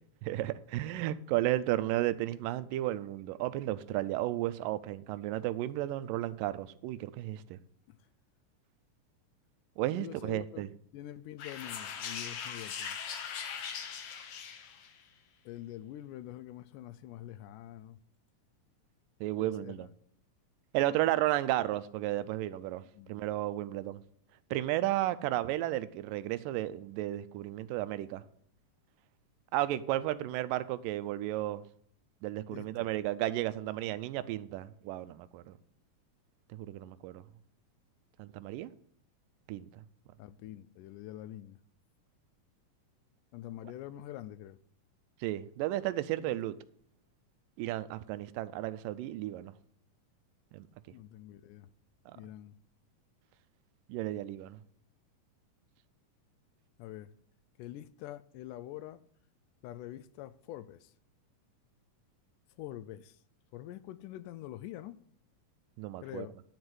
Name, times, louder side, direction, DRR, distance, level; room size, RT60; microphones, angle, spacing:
voice 1, 0.2-7.6 9.8-10.7 19.2-19.9 20.7-22.8 23.1-24.0 24.5-28.2 29.5-31.6 32.2-35.6 36.5-37.2 38.2-38.7 39.5-39.7 45.2-46.5 47.6-49.5 50.5-50.7 52.1-52.2 53.9-54.6 65.8-66.3, right 15 dB, 90° right, 2.2 m, -33 dB
voice 2, 10.0-10.7 10.9-13.0 15.5-18.0 19.4-19.9 22.9-23.1 32.5-32.9 40.2-41.6 43.3-44.6 46.2-46.4 50.9-51.7 52.2-52.6 56.8-57.1 57.6-59.0 59.6-60.9 62.6-63.2 63.5-65.0 66.0-66.4, left 13 dB, 80° left, 2.0 m, -45 dB
sound 1, 11.4-15.0, left 7 dB, 65° left, 2.2 m, -40 dB
11.0 x 4.4 x 8.0 m
omnidirectional pair, 3.8 m